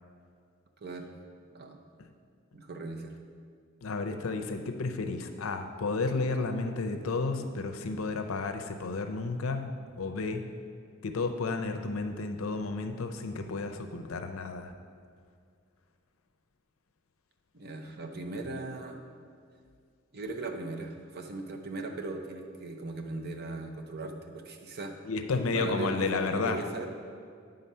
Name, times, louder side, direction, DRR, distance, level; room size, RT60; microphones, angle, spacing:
voice 1, 0.8-1.1 1.5-1.8 2.5-3.1 17.5-19.0 20.1-24.9 25.5-26.9, right 3 dB, 50° right, 4 dB, 0.7 m, -38 dB
voice 2, 3.8-10.5 11.0-14.7 25.0-26.6, left 3 dB, 75° left, 6 dB, 0.6 m, -32 dB
8.9 x 3.8 x 5.5 m, 2.2 s
head